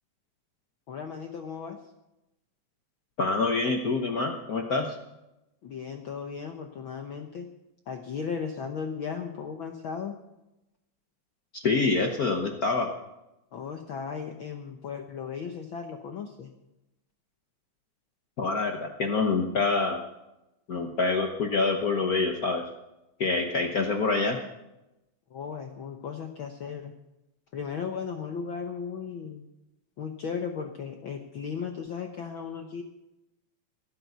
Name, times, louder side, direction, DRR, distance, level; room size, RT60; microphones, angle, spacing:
voice 1, 0.9-1.8 5.6-7.5 7.9-10.1 13.5-16.5 25.3-26.9 27.5-29.4 30.0-32.8, left 6 dB, 60° left, 5 dB, 1.3 m, -36 dB
voice 2, 3.2-5.0 11.5-12.9 18.4-20.0 20.7-22.6 23.2-24.4, left 3 dB, 80° left, 3 dB, 0.8 m, -26 dB
16.5 x 9.3 x 6.8 m, 0.93 s
omnidirectional pair, 3.3 m